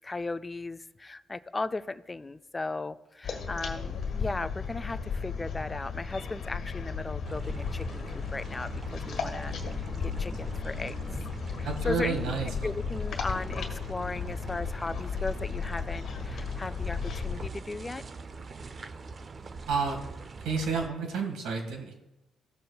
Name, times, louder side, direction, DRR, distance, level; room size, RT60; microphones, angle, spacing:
voice 1, 0.0-11.0 11.6-12.2 12.6-18.0, left 3 dB, 20° left, 13 dB, 0.4 m, -36 dB
sound 1, 3.2-17.5, left 5 dB, 60° left, 1.5 m, -35 dB
sound 2, 7.2-20.9, right 4 dB, 40° right, 0.5 m, -43 dB
voice 2, 11.6-12.7 19.6-20.0 20.4-21.9, right 5 dB, 85° right, 3 dB, 1.8 m, -30 dB
15.5 x 6.5 x 2.3 m, 0.97 s
cardioid pair, 90°, 0 cm